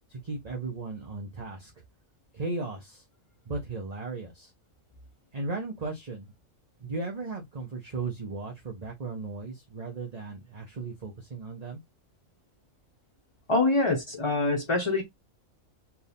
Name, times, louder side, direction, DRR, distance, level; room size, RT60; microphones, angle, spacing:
voice 1, 0.1-1.7 2.3-3.0 3.5-4.5 5.3-6.3 6.8-11.8, right 3 dB, 35° right, 0.9 m, -36 dB
voice 2, 13.5-15.0, left 2 dB, 25° left, 0.9 m, -25 dB
4.7 x 2.6 x 3.5 m
omnidirectional pair, 1.4 m